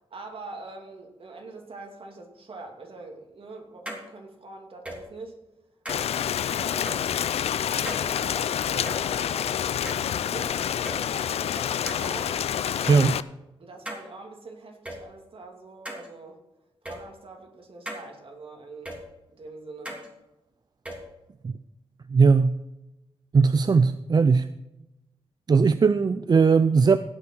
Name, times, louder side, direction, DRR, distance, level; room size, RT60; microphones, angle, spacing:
voice 1, 0.1-5.4 5.9-6.9 7.5-12.4 13.6-16.4 16.8-19.0 19.3-20.0, right 3 dB, 65° right, 2 dB, 2.5 m, -44 dB
sound 1, 3.9-4.0 4.9-5.0 5.9-6.1 6.9-7.0 7.9-8.0 8.9-9.0 9.9-10.4 10.9-11.0 11.9-12.1 12.9-13.0 13.9-14.0 14.9-15.0 15.9-16.1 16.9-17.0 17.9-18.0 18.9-19.0 19.9-20.1 20.9-21.0, right 1 dB, 10° right, 2.9 m, -36 dB
Rain, 5.9-13.2, left 9 dB, 85° left, 0.4 m, -28 dB
voice 2, 22.1-22.6 23.3-24.5 25.5-27.0, right 5 dB, 40° right, 12 dB, 0.4 m, -19 dB
17.0 x 6.1 x 4.5 m, 0.96 s
cardioid pair, 65°, 10 cm